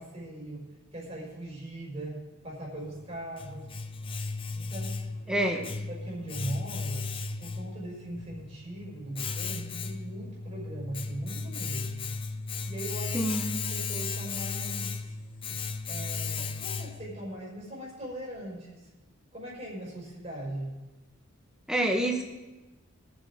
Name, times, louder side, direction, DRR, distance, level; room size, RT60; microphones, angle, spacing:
voice 1, 0.0-2.2 2.4-3.7 4.5-5.5 5.9-7.1 7.4-12.1 12.7-15.1 15.9-18.9 19.3-20.7, right 1 dB, 30° right, -5 dB, 4.6 m, -40 dB
Domestic sounds home sounds, 2.8-17.2, left 4 dB, 25° left, 0.5 m, -35 dB
voice 2, 5.3-5.6 13.1-13.4 15.5-15.6 21.7-22.2, right 1 dB, 5° right, 2 dB, 1.2 m, -27 dB
22.5 x 7.8 x 3.7 m, 1.1 s
head